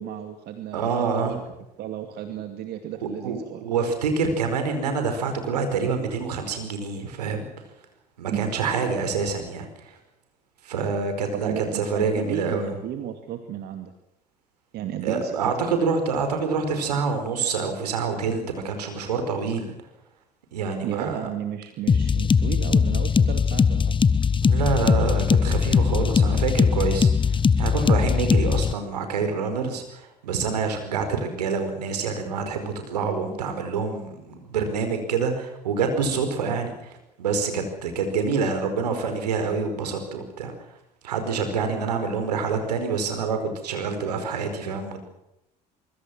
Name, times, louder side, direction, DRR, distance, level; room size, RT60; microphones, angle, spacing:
voice 1, 0.0-1.4 1.8-3.6 8.3-8.5 11.3-13.9 14.7-15.3 20.8-24.0, right 11 dB, 55° right, 7 dB, 2.5 m, -33 dB
voice 2, 0.7-1.4 2.3-2.4 3.0-7.5 8.2-10.0 10.6-12.8 15.0-19.7 20.5-21.3 24.4-40.7 41.0-45.0, right 5 dB, 80° right, 7 dB, 5.0 m, -27 dB
sound 1, 21.9-28.7, left 6 dB, 25° left, 1.1 m, -20 dB
25.5 x 23.5 x 6.2 m, 0.86 s
figure-of-eight pair, 60°, 20 cm